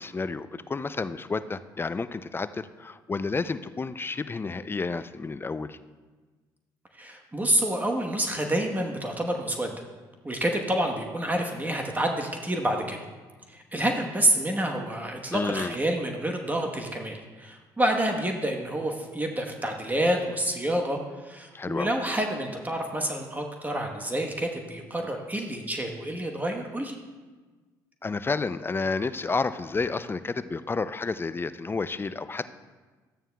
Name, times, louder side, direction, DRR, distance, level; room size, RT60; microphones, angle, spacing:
voice 1, 0.0-5.8 15.3-15.8 21.5-21.9 28.0-32.5, left 4 dB, 25° left, 13 dB, 0.4 m, -30 dB
voice 2, 7.0-9.7 10.2-13.0 13.5-26.9, right 1 dB, 20° right, 2 dB, 1.1 m, -28 dB
13.0 x 8.9 x 2.3 m, 1.3 s
supercardioid pair, 65°, 9 cm